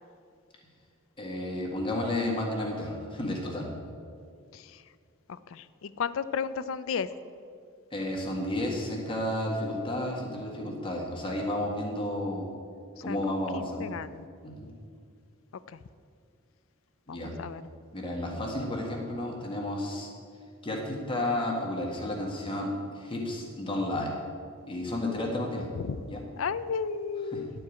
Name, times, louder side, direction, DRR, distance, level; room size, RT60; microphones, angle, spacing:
voice 1, 1.2-3.7 7.9-12.5 13.0-13.9 14.4-14.7 17.1-17.3 17.9-20.1 20.6-24.1 24.7-25.7 26.1-26.2 27.3-27.4, left 1 dB, 25° left, -1 dB, 1.6 m, -32 dB
voice 2, 5.5-7.1 13.1-13.2 13.5-14.3 15.7-15.8 17.1-17.6 25.8-26.0 26.4-27.5, left 6 dB, 70° left, 15 dB, 0.4 m, -33 dB
11.5 x 4.6 x 8.4 m, 2.3 s
head